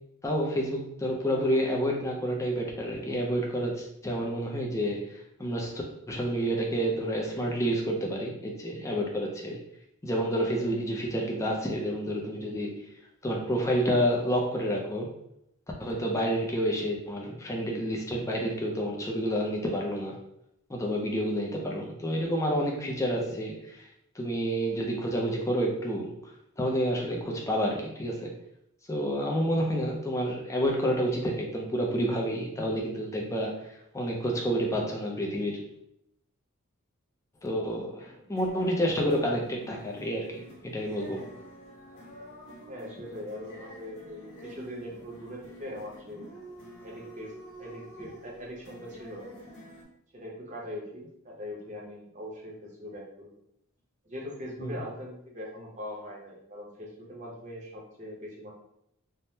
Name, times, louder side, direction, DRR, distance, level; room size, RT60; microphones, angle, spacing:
voice 1, 0.2-9.6 10.0-12.9 13.2-15.1 15.8-20.2 20.7-23.9 24.1-28.3 28.9-35.7 37.4-41.3 54.6-54.8, equal, 15° left, -1 dB, 0.4 m, -29 dB
sound 1, 38.3-49.8, equal, 70° left, 0.9 m, -48 dB
voice 2, 42.7-46.3 46.8-47.3 47.6-49.2 50.1-53.3 54.0-58.5, left 1 dB, 35° right, -3 dB, 0.7 m, -41 dB
3.4 x 2.1 x 2.7 m, 0.78 s
head